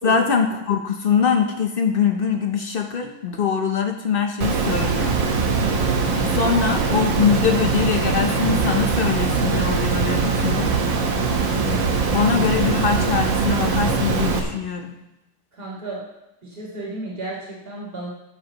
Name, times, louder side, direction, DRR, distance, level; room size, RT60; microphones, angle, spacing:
voice 1, 0.0-5.2 6.3-10.7 12.1-14.9, left 6 dB, 80° left, 4 dB, 0.5 m, -22 dB
Water, 4.4-14.4, right 4 dB, 85° right, 1.9 m, -21 dB
voice 2, 15.6-16.1 16.4-18.1, right 2 dB, 30° right, -6 dB, 3.4 m, -33 dB
14.5 x 8.1 x 2.9 m, 0.94 s
omnidirectional pair, 2.0 m